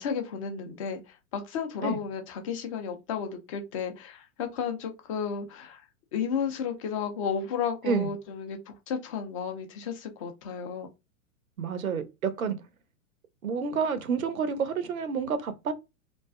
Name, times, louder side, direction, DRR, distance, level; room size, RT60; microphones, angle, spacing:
voice 1, 0.0-5.8 6.1-10.9, left 6 dB, 25° left, 0.4 m, -33 dB
voice 2, 11.6-12.6 13.4-15.7, right 6 dB, 80° right, 0.6 m, -29 dB
2.4 x 2.2 x 2.3 m
figure-of-eight pair, 100°, 41 cm